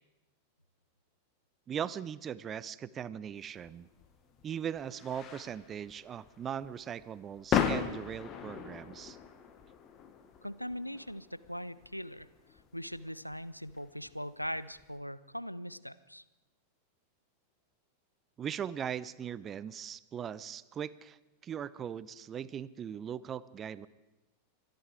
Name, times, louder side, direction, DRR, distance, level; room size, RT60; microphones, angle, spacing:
voice 1, 1.7-3.9 4.4-9.2 18.4-23.9, right 8 dB, 25° right, 19 dB, 0.5 m, -39 dB
sound 1, 3.6-14.9, left 8 dB, 30° left, 1.5 m, -38 dB
voice 2, 10.4-12.3 12.7-16.2, equal, 90° left, 17 dB, 0.5 m, -40 dB
24.5 x 10.5 x 4.9 m, 1.0 s
figure-of-eight pair, 90°, 0 cm